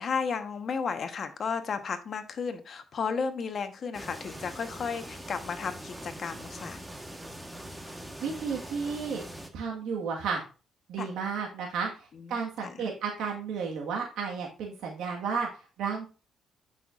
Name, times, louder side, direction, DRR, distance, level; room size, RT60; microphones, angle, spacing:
voice 1, 0.0-6.8 11.0-11.1 12.6-12.7, left 5 dB, 50° left, 1.1 m, -33 dB
sound 1, 3.9-9.5, right 1 dB, 10° right, 1.2 m, -43 dB
voice 2, 8.2-9.2 9.5-10.4 10.9-16.1, right 5 dB, 85° right, 1.5 m, -33 dB
9.1 x 5.8 x 2.5 m
cardioid pair, 90°, 0 cm